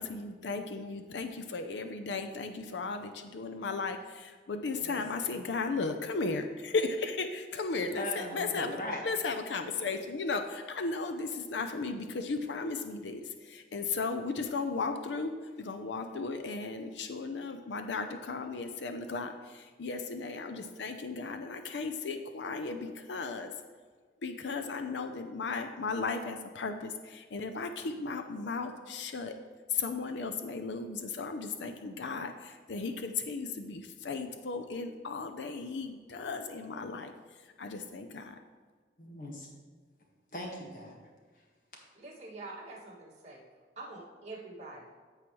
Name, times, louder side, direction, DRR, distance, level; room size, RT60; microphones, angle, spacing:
voice 1, 0.0-8.8 9.0-23.5 24.2-29.4 29.7-37.1 37.6-38.4, left 4 dB, 80° left, 7 dB, 0.5 m, -35 dB
voice 2, 8.0-9.0 39.0-39.5 40.3-41.0, left 1 dB, 45° left, -1 dB, 1.6 m, -39 dB
voice 3, 42.0-43.4 43.8-45.0, right 2 dB, 40° right, -6 dB, 2.1 m, -45 dB
14.5 x 4.8 x 3.1 m, 1.5 s
head